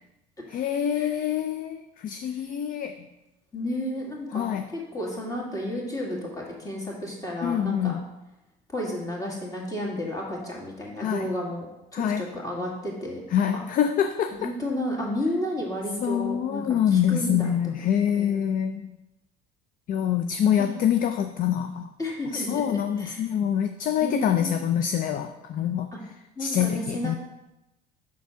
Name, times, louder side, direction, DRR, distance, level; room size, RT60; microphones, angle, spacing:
voice 1, 0.5-3.1 4.3-4.7 7.4-8.1 11.0-11.3 11.9-12.3 13.3-14.5 16.0-18.9 19.9-21.9 22.3-25.9 26.4-27.1, left 9 dB, 45° left, 8 dB, 0.4 m, -25 dB
voice 2, 3.5-4.6 4.9-7.9 8.7-11.7 11.9-13.2 13.5-13.6 14.4-17.9 18.1-18.5 20.6-20.7 22.0-23.2 24.0-24.6 26.4-27.2, left 1 dB, 15° left, -3 dB, 2.1 m, -32 dB
5.9 x 4.2 x 4.6 m, 0.95 s
supercardioid pair, 80°, 20 cm